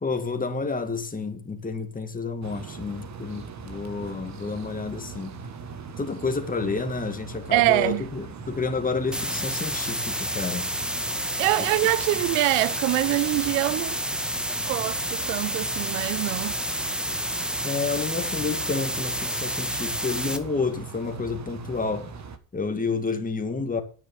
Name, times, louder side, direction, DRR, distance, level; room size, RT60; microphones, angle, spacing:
voice 1, 0.0-5.4 6.0-10.7 11.6-11.7 17.6-22.1 22.5-23.8, left 4 dB, 15° left, 2.3 m, -30 dB
sound 1, 2.4-22.4, right 5 dB, 35° right, 1.7 m, -40 dB
voice 2, 7.5-8.1 11.4-14.0 14.7-16.5, right 20 dB, 80° right, 0.7 m, -24 dB
sound 2, 9.1-20.4, equal, ahead, 1.3 m, -29 dB
10.0 x 9.5 x 5.2 m
supercardioid pair, 110°, 47 cm